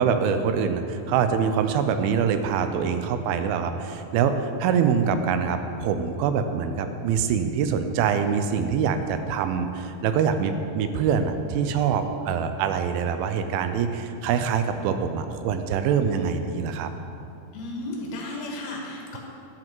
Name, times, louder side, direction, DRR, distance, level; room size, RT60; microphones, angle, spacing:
voice 1, 0.0-16.9, right 7 dB, 85° right, 8 dB, 2.4 m, -24 dB
voice 2, 17.5-19.2, left 2 dB, 90° left, -1 dB, 3.4 m, -34 dB
12.0 x 7.6 x 4.6 m, 2.6 s
omnidirectional pair, 4.3 m